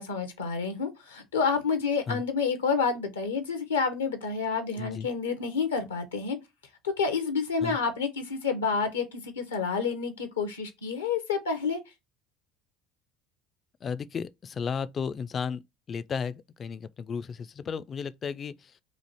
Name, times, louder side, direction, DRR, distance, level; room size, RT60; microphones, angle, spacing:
voice 1, 0.0-6.4 6.8-11.8, left 5 dB, 85° left, 0.7 m, -29 dB
voice 2, 4.8-5.1 7.6-7.8 13.8-15.6 15.9-18.7, left 6 dB, 40° left, 0.3 m, -34 dB
3.1 x 2.4 x 4.1 m
hypercardioid pair, 65°, 0 cm